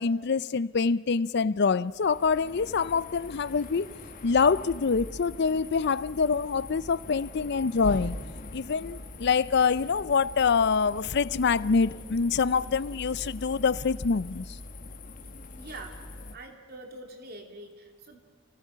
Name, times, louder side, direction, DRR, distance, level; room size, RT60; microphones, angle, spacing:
voice 1, 0.0-3.9 4.2-8.2 8.5-14.5, left 5 dB, 55° left, 0.5 m, -25 dB
sound 1, 1.9-16.3, left 2 dB, 40° left, 1.2 m, -42 dB
voice 2, 15.6-16.0 16.3-18.2, right 2 dB, 50° right, 2.9 m, -44 dB
29.0 x 19.0 x 5.7 m
head